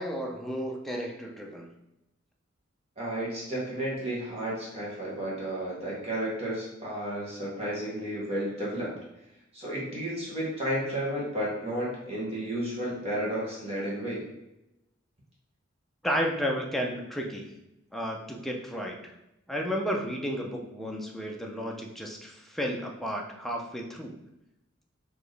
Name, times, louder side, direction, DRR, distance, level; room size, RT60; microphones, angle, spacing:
voice 1, 0.0-1.7 16.0-17.4 17.9-19.0 19.5-24.2, equal, ahead, 0 dB, 0.5 m, -32 dB
voice 2, 3.0-8.9 9.5-14.2, right 1 dB, 30° right, -6 dB, 1.3 m, -32 dB
4.3 x 2.9 x 3.2 m, 0.89 s
head